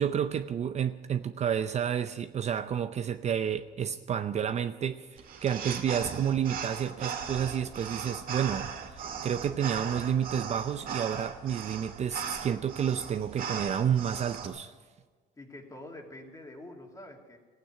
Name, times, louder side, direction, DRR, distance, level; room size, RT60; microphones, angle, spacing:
voice 1, 0.0-14.7, right 8 dB, 40° right, 10 dB, 0.6 m, -30 dB
sound 1, 5.2-14.5, right 7 dB, 60° right, 1.9 m, -38 dB
voice 2, 15.4-17.4, left 1 dB, 20° left, 2 dB, 2.5 m, -46 dB
15.0 x 9.2 x 9.3 m, 1.4 s
cardioid pair, 110°, 17 cm